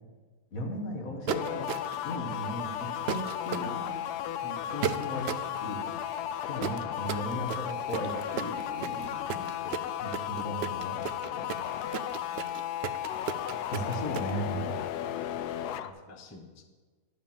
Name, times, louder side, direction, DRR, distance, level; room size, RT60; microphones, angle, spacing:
voice 1, 0.5-1.7 2.0-3.8 4.7-5.3 5.6-5.9 6.5-9.1 9.6-11.5 13.7-14.8 15.8-15.9, equal, 60° left, 2 dB, 1.9 m, -36 dB
sound 1, 1.3-15.9, left 11 dB, 85° left, 1.1 m, -35 dB
sound 2, 1.3-2.1 3.1-3.7 4.8-5.5 6.6-14.3, right 9 dB, 80° right, 0.5 m, -34 dB
voice 2, 3.6-4.0 4.4-4.7 9.3-9.5 15.6-15.7 16.1-16.6, left 2 dB, 20° left, 4 dB, 0.4 m, -46 dB
11.5 x 5.1 x 7.2 m, 1.4 s
omnidirectional pair, 1.7 m